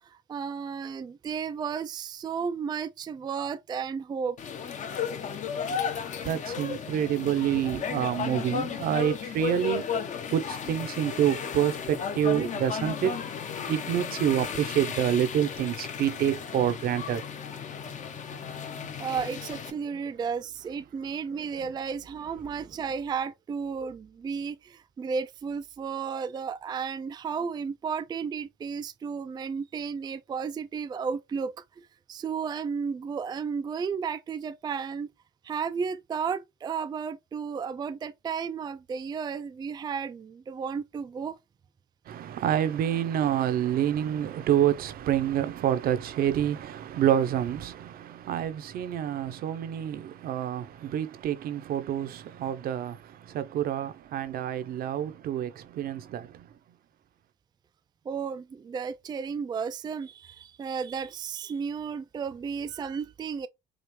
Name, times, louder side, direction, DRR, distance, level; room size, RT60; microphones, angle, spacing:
voice 1, 0.0-4.4 18.4-35.1 35.4-41.4 58.1-63.5, right 6 dB, 25° right, 0.3 m, -33 dB
sound 1, 4.4-19.7, left 7 dB, 45° left, 0.9 m, -34 dB
voice 2, 6.2-9.9 10.3-13.1 13.7-17.2 21.6-21.7 42.1-56.5, right 10 dB, 60° right, 0.7 m, -27 dB
4.9 x 2.4 x 3.1 m
cardioid pair, 110°, 17 cm